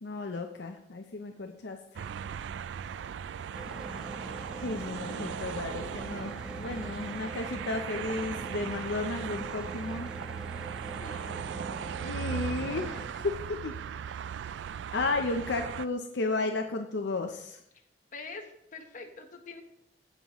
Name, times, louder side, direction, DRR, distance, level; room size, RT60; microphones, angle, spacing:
voice 1, 0.0-2.0 4.6-10.1 12.0-13.7 14.9-17.6, left 3 dB, 75° left, 4 dB, 0.7 m, -33 dB
sound 1, 2.0-15.9, right 8 dB, 85° right, 0.3 m, -38 dB
sound 2, 3.5-13.1, right 1 dB, 5° right, 0.7 m, -44 dB
voice 2, 4.5-5.2 5.9-6.0 10.9-11.4 18.1-19.6, left 3 dB, 45° left, 3 dB, 1.2 m, -45 dB
16.0 x 5.5 x 3.1 m, 0.76 s
head